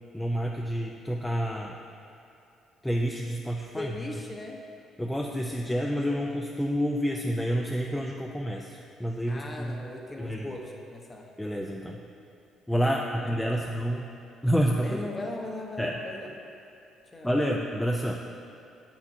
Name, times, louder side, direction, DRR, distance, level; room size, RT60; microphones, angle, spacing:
voice 1, 0.1-1.8 2.8-3.9 5.0-9.8 10.2-10.5 11.4-12.0 12.7-14.0 14.4-15.0 15.8-15.9 17.2-18.2, equal, 5° left, -1 dB, 0.4 m, -28 dB
voice 2, 3.7-4.6 9.3-11.3 13.3-13.7 14.8-16.3 17.1-17.3, left 2 dB, 25° left, 1 dB, 0.8 m, -38 dB
8.0 x 5.8 x 2.7 m, 2.6 s
supercardioid pair, 80°, 0 cm